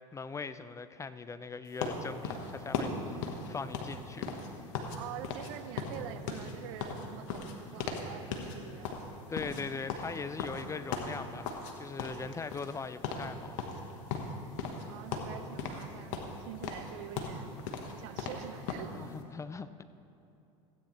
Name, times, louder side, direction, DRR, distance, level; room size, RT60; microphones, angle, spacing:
voice 1, 0.1-4.4 9.3-13.6 19.1-19.8, left 5 dB, 20° left, 13 dB, 0.4 m, -40 dB
sound 1, 1.8-5.0 5.2-5.5 5.8-8.1 8.3-8.6 8.8-11.7 12.0-12.8 13.0-13.3 13.6-14.9 15.1-15.9 16.1-18.9, left 5 dB, 65° left, 1.3 m, -37 dB
voice 2, 5.0-9.0 14.9-17.6 17.9-19.1, right 10 dB, 65° right, 11 dB, 0.6 m, -45 dB
16.0 x 8.8 x 3.1 m, 2.8 s
hypercardioid pair, 80°, 17 cm